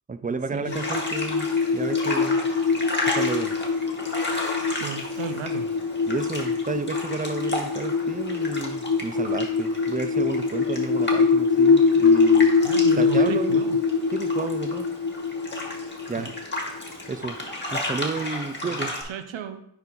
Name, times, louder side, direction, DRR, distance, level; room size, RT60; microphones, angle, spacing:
voice 1, 0.1-2.5 3.1-3.5 6.1-12.5 13.0-13.6 14.1-14.9 16.1-16.3 17.1-17.4 17.7-19.0, right 4 dB, 20° right, 13 dB, 0.4 m, -31 dB
sound 1, 0.7-17.0, left 5 dB, 60° left, 0.8 m, -23 dB
sound 2, 0.7-19.0, left 1 dB, 25° left, 1.8 m, -34 dB
voice 2, 4.7-5.7 12.6-13.8 16.2-16.3 18.6-19.6, right 7 dB, 75° right, 9 dB, 0.7 m, -35 dB
9.6 x 3.8 x 3.0 m, 0.74 s
cardioid pair, 45°, 47 cm